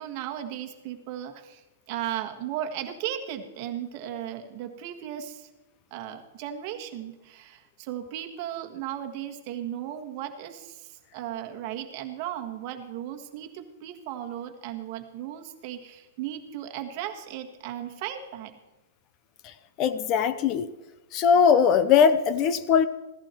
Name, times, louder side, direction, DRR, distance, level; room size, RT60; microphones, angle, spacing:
voice 1, 0.0-5.5 5.9-18.5, right 11 dB, 30° right, 5 dB, 1.5 m, -36 dB
voice 2, 19.8-20.7 21.1-22.9, left 7 dB, 25° left, 13 dB, 0.5 m, -20 dB
16.0 x 15.0 x 4.5 m, 1.1 s
supercardioid pair, 180°, 0 cm